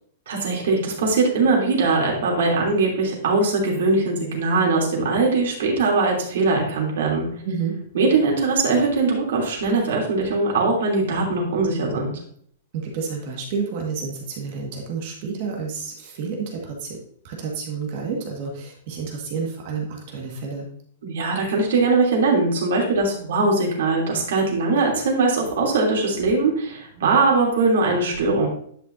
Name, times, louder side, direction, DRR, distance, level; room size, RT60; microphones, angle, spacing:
voice 1, 0.3-7.3 7.9-12.1 21.0-28.5, right 3 dB, 65° right, -1 dB, 3.0 m, -21 dB
voice 2, 12.7-17.0 17.2-20.7, right 5 dB, 40° right, 0 dB, 1.7 m, -30 dB
10.5 x 5.6 x 2.7 m, 0.62 s
supercardioid pair, 175°, 0 cm